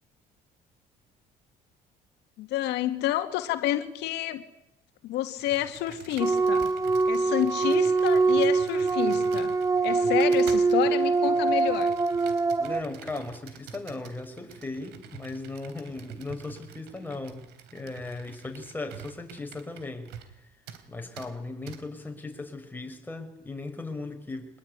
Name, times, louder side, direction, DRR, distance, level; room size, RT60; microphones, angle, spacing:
voice 1, 2.4-4.4 5.0-6.7 7.1-9.6 9.8-11.9, left 13 dB, 85° left, 2.1 m, -29 dB
Computer keyboard, 5.4-20.4 20.7-20.8 21.2-21.3 21.7-21.8, right 8 dB, 85° right, 3.6 m, -47 dB
sound 1, 6.2-12.8, right 4 dB, 20° right, 0.9 m, -23 dB
voice 2, 12.6-20.1 20.9-24.6, left 2 dB, 10° left, 5.9 m, -37 dB
24.0 x 20.5 x 9.7 m
cardioid pair, 110°, 17 cm